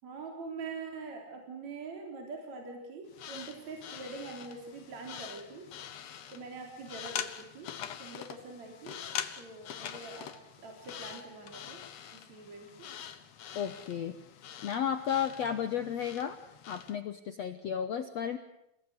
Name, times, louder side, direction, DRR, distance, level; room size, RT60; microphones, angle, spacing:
voice 1, 0.0-5.7 6.3-7.7 8.0-9.0 9.3-10.3 10.6-11.8 12.1-12.9, right 4 dB, 45° right, 2 dB, 4.7 m, -44 dB
sound 1, 3.1-17.0, left 9 dB, 60° left, 1.8 m, -44 dB
voice 2, 13.5-14.2 14.6-16.4 16.6-18.4, left 8 dB, 75° left, 10 dB, 1.5 m, -33 dB
29.0 x 18.0 x 9.8 m, 0.82 s
omnidirectional pair, 4.6 m